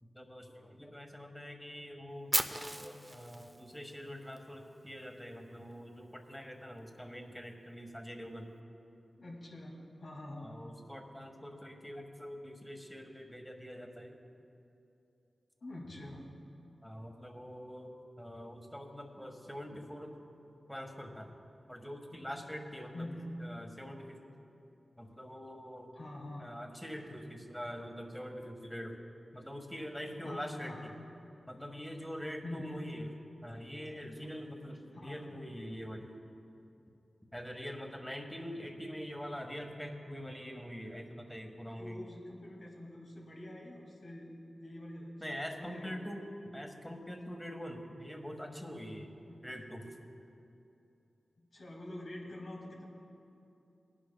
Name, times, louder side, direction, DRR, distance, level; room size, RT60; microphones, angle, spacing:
voice 1, 0.0-8.5 10.4-14.2 16.8-20.2 20.7-21.3 21.7-23.1 23.4-24.2 25.0-25.9 26.4-29.0 29.3-30.9 31.5-33.1 33.4-36.1 37.3-42.1 45.2-49.1 49.4-50.0, equal, 5° left, 3 dB, 1.4 m, -44 dB
Fire, 2.3-4.4, right 1 dB, 20° right, 0.6 m, -35 dB
voice 2, 9.2-10.5 15.6-16.2 22.1-22.3 22.9-23.3 25.9-26.5 30.2-30.9 32.4-32.8 34.9-35.2 41.8-44.3 44.6-46.1 49.3-49.4 51.4-52.8, left 1 dB, 75° left, -2 dB, 2.2 m, -46 dB
19.0 x 10.5 x 2.3 m, 2.8 s
cardioid pair, 50°, 0 cm